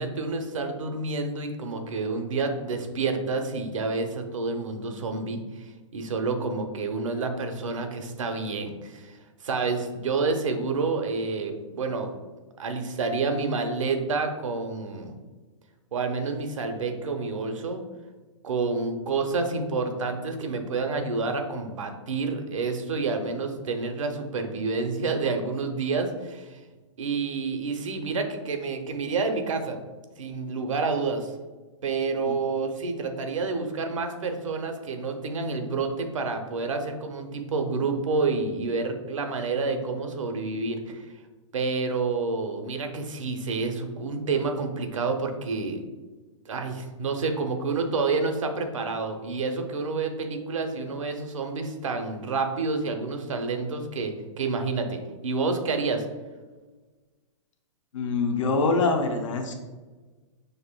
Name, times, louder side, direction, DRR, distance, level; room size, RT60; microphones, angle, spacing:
voice 1, 0.0-9.2 9.4-12.1 12.6-15.1 15.9-17.8 18.4-26.6 27.0-29.8 30.2-31.3 31.8-41.1 41.5-45.8 46.5-56.1, right 4 dB, 90° right, 5 dB, 0.7 m, -29 dB
voice 2, 57.9-59.6, left 3 dB, 80° left, 3 dB, 0.7 m, -24 dB
6.4 x 2.6 x 2.2 m, 1.3 s
hypercardioid pair, 140°, 16 cm